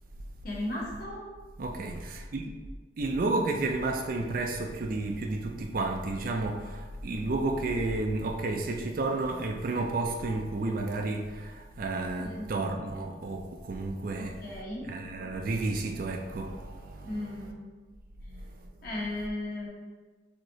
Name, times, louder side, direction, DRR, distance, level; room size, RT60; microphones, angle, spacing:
voice 1, 0.4-1.2 12.1-12.5 14.2-14.9 17.0-17.7 18.8-19.7, left 1 dB, 50° left, -5 dB, 1.3 m, -36 dB
voice 2, 1.6-2.5 3.0-14.6 14.9-17.5 18.3-18.6, right 2 dB, 50° right, 3 dB, 0.4 m, -32 dB
6.2 x 2.9 x 2.7 m, 1.3 s
head